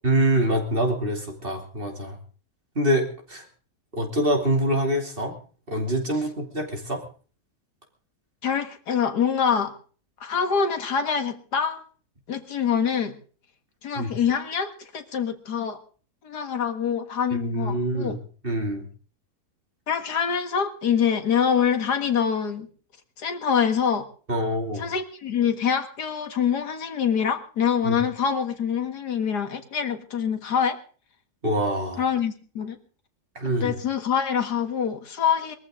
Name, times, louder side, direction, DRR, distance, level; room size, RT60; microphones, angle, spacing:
voice 1, 0.0-2.2 2.7-3.4 4.0-5.3 5.7-7.0 14.0-14.1 17.4-18.2 18.4-18.8 24.3-24.9 27.8-28.0 31.4-32.0 33.3-33.8, right 1 dB, 35° right, 3 dB, 2.9 m, -25 dB
voice 2, 8.4-9.7 10.2-11.8 12.3-13.2 13.8-15.8 16.2-18.2 19.9-22.7 23.2-24.1 24.8-30.8 32.0-32.8 33.6-35.6, left 7 dB, 90° left, 7 dB, 2.2 m, -25 dB
21.5 x 14.5 x 3.8 m, 0.41 s
omnidirectional pair, 1.7 m